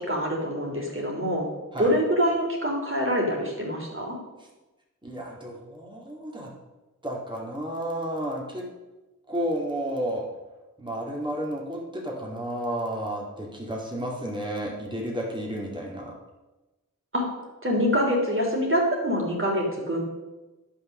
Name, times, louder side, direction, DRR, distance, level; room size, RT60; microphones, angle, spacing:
voice 1, 0.0-1.5 1.8-4.2 17.1-17.3 17.6-20.0, equal, 40° right, -1 dB, 3.2 m, -25 dB
voice 2, 5.0-6.5 7.0-8.7 9.3-10.3 10.8-16.1, right 1 dB, 15° right, -3 dB, 2.3 m, -32 dB
11.5 x 5.8 x 6.5 m, 1.1 s
wide cardioid pair, 65°, 33 cm